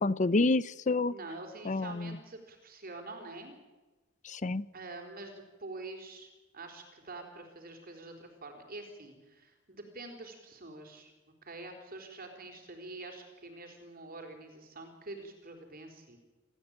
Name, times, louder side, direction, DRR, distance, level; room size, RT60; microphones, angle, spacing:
voice 1, 0.0-1.1 1.7-2.2 4.3-4.6, left 3 dB, 40° left, 18 dB, 0.6 m, -28 dB
voice 2, 1.1-3.6 4.7-11.1 11.4-16.2, right 2 dB, 45° right, 4 dB, 4.1 m, -46 dB
29.0 x 14.0 x 8.9 m, 1.2 s
head